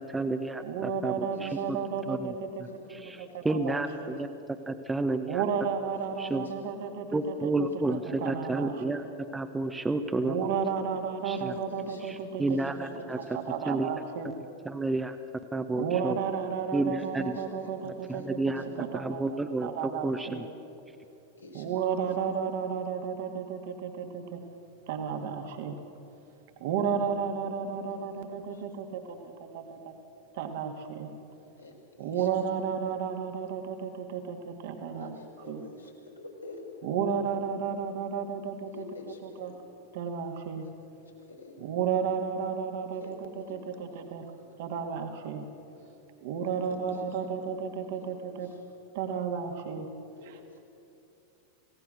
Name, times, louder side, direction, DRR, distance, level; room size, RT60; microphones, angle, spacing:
voice 1, 0.0-1.8 2.1-2.3 2.6-3.2 3.4-4.3 4.7-5.4 6.2-6.5 7.1-9.0 9.3-10.5 11.2-11.6 12.0-13.2 13.7-13.9 14.6-15.2 15.5-16.2 16.7-17.4 17.8-18.6 18.9-20.5, right 2 dB, 10° right, 7 dB, 1.1 m, -31 dB
voice 2, 0.6-2.7 3.2-4.2 5.3-9.0 10.2-14.4 15.7-19.2 19.6-20.4 21.5-24.4 24.9-25.8 26.6-29.9 30.3-31.1 32.0-35.2 35.5-35.6 36.8-38.8 39.2-39.5 39.9-40.7 41.6-44.3 44.6-45.5 46.2-48.5 48.9-49.9, right 7 dB, 50° right, 5 dB, 2.0 m, -33 dB
voice 3, 1.3-1.9 2.6-3.0 6.3-6.5 6.8-7.3 11.3-11.4 11.7-12.0 12.4-13.3 17.0-17.5 18.0-18.3 18.6-18.7 21.4-21.7 22.0-22.1 27.7-28.2 28.5-28.6 31.6-31.7 32.0-32.3 34.9-36.6 38.7-39.5 41.3-41.6 42.9-43.1 43.4-43.6 46.5-47.0 47.4-47.5 47.9-48.6 50.2-50.6, left 2 dB, 85° left, -2 dB, 5.0 m, -48 dB
27.0 x 17.5 x 6.4 m, 2.7 s
figure-of-eight pair, 90°, 0 cm